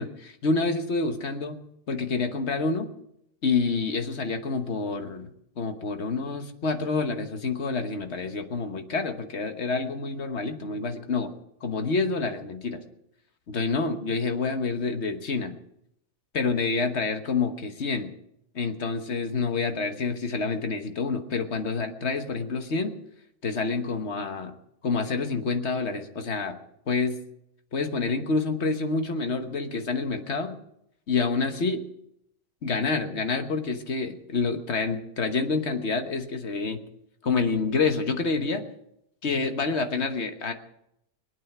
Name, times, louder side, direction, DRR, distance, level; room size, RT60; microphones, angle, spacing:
voice 1, 0.0-1.6 1.9-2.9 3.4-5.3 5.6-11.3 11.6-12.8 13.5-15.5 16.3-18.1 18.5-22.9 23.4-24.5 24.8-26.6 26.9-27.2 27.7-30.6 31.1-31.8 32.6-36.8 37.2-38.6 39.2-40.5, left 4 dB, 45° left, 7 dB, 1.4 m, -28 dB
22.0 x 9.1 x 6.0 m, 0.79 s
omnidirectional pair, 1.8 m